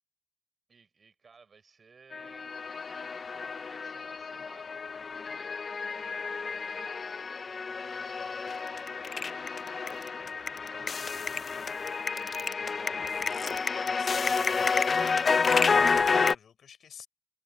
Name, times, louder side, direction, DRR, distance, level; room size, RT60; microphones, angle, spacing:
voice 1, 0.7-2.6 3.2-4.8 5.1-13.1, right 5 dB, 50° right, 6.1 m, -59 dB
sound 1, 2.1-16.3, left 5 dB, 50° left, 0.5 m, -30 dB
voice 2, 13.8-14.3 14.6-17.1, left 7 dB, 80° left, 3.8 m, -52 dB
wide cardioid pair, 100°, 0 cm